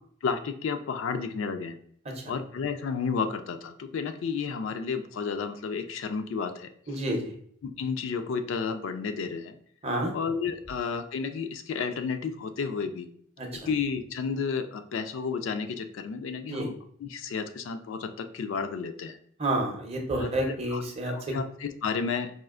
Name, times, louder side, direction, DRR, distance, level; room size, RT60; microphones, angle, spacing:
voice 1, 0.2-1.8 2.3-6.7 7.6-9.6 10.1-13.1 13.5-16.7 17.0-19.2 20.2-22.3, left 5 dB, 65° left, 8 dB, 0.3 m, -32 dB
voice 2, 6.9-7.3 9.8-10.1 13.4-13.5 16.5-16.7 19.4-21.1, right 1 dB, 30° right, 1 dB, 0.6 m, -29 dB
4.3 x 2.4 x 2.4 m, 0.63 s
head